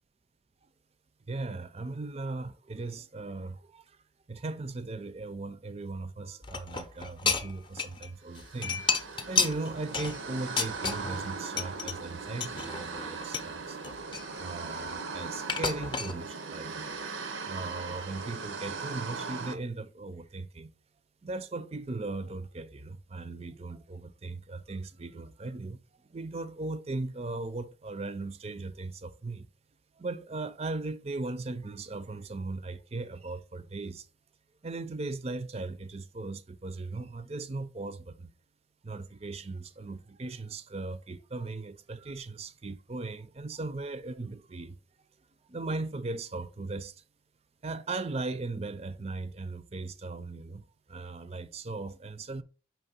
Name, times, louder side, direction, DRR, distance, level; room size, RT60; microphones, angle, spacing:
voice 1, 1.3-4.0 4.3-8.9 9.3-13.8 14.4-17.0 17.4-20.7 21.2-25.8 26.1-29.5 30.0-34.1 34.6-38.3 38.8-44.8 45.5-47.0 47.6-52.4, right 3 dB, 30° right, 0.4 m, -38 dB
sound 1, 6.4-8.1 8.4-11.3 11.6-11.9 12.4-13.5 13.8-15.0 15.5-16.1, left 5 dB, 25° left, 0.6 m, -31 dB
sound 2, 8.3-19.6, right 4 dB, 85° right, 0.8 m, -39 dB
5.7 x 3.1 x 5.4 m
head